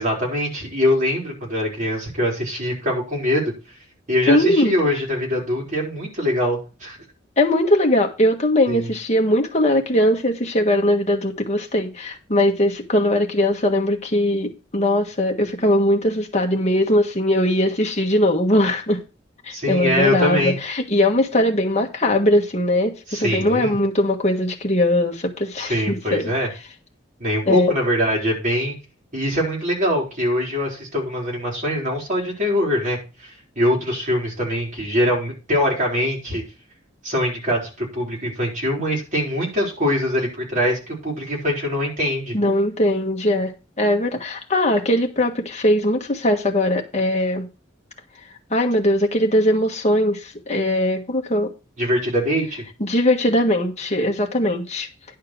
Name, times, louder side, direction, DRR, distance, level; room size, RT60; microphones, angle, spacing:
voice 1, 0.0-3.5 4.1-7.0 8.7-8.9 19.5-20.5 23.1-23.7 25.6-26.5 27.2-28.7 29.1-36.4 37.0-42.3 51.8-52.6, left 1 dB, 40° right, 4.3 m, -23 dB
voice 2, 4.3-4.8 7.4-19.0 19.4-26.3 27.5-27.7 42.3-47.5 48.5-51.5 52.8-54.9, left 1 dB, 35° left, 1.6 m, -20 dB
10.5 x 4.4 x 6.3 m
head